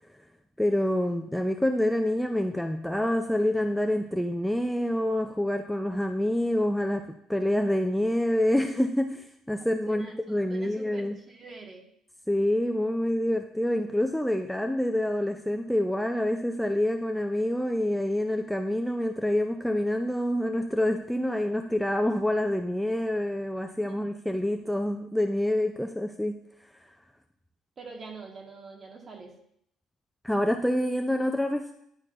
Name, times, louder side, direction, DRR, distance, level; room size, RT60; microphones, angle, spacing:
voice 1, 0.6-11.2 12.3-26.4 30.2-31.7, left 1 dB, ahead, 4 dB, 0.4 m, -27 dB
voice 2, 9.6-11.9 23.8-24.0 27.8-29.3, right 3 dB, 35° right, 2 dB, 1.4 m, -45 dB
10.5 x 4.4 x 2.5 m, 0.72 s
cardioid pair, 90°, 0 cm